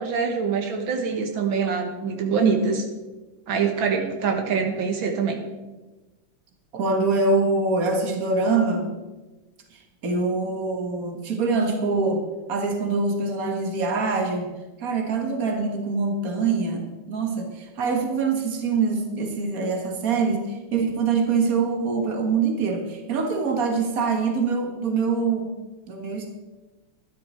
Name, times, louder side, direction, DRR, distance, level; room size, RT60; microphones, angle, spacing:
voice 1, 0.0-2.8 3.5-5.4, right 5 dB, 80° right, 2 dB, 2.2 m, -25 dB
voice 2, 2.4-2.7 6.7-8.9 10.0-12.2 12.5-14.5 14.8-25.5 25.9-26.3, right 4 dB, 45° right, 3 dB, 2.1 m, -24 dB
13.0 x 11.5 x 4.5 m, 1.2 s
omnidirectional pair, 2.1 m